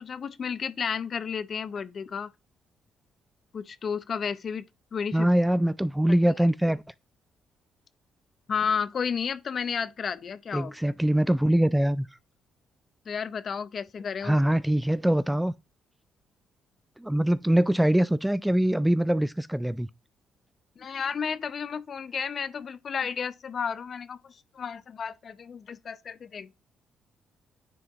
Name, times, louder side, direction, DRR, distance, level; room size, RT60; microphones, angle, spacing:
voice 1, 0.0-2.3 3.5-4.6 4.9-5.3 8.5-10.7 13.1-14.4 20.8-26.5, left 6 dB, 50° left, 0.6 m, -32 dB
voice 2, 5.1-6.8 10.5-12.1 14.2-15.5 17.0-19.9, right 1 dB, 5° right, 0.3 m, -23 dB
9.7 x 4.6 x 3.0 m
cardioid pair, 90°, 0 cm